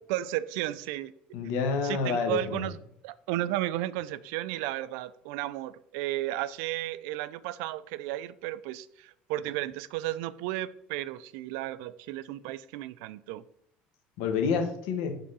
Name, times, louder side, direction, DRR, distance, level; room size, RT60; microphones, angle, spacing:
voice 1, 0.1-1.1 1.8-2.8 3.0-13.4, right 14 dB, 85° right, 16 dB, 0.3 m, -33 dB
voice 2, 1.3-2.7 14.2-15.1, left 5 dB, 80° left, 6 dB, 1.1 m, -28 dB
5.5 x 3.7 x 5.4 m, 0.72 s
cardioid pair, 165°, 4 cm